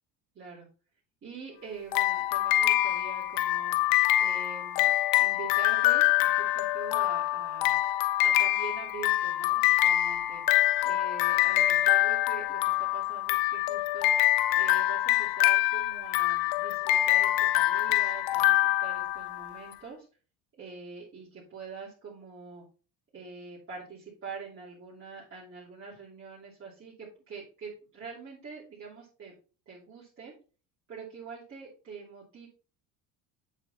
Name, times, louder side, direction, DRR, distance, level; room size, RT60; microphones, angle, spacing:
voice 1, 0.3-0.7 1.2-3.8 4.2-4.9 5.2-7.8 8.2-14.1 14.5-20.0 20.6-22.6 23.1-29.3 29.7-30.3 30.9-32.5, right 5 dB, 30° right, -6 dB, 2.9 m, -44 dB
sound 1, 1.9-19.6, left 14 dB, 60° left, 0.6 m, -25 dB
8.1 x 5.0 x 4.1 m, 0.36 s
cardioid pair, 130°, 41 cm